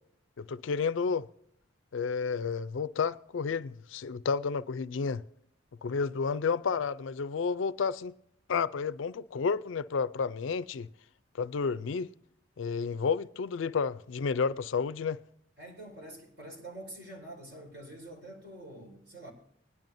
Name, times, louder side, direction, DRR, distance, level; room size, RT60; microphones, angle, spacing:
voice 1, 0.4-1.3 1.9-5.2 5.8-8.1 8.5-10.9 11.4-12.1 12.6-15.2, left 5 dB, 80° left, 0.4 m, -31 dB
voice 2, 15.6-19.3, right 1 dB, 60° right, 4.7 m, -46 dB
20.5 x 10.5 x 2.6 m
head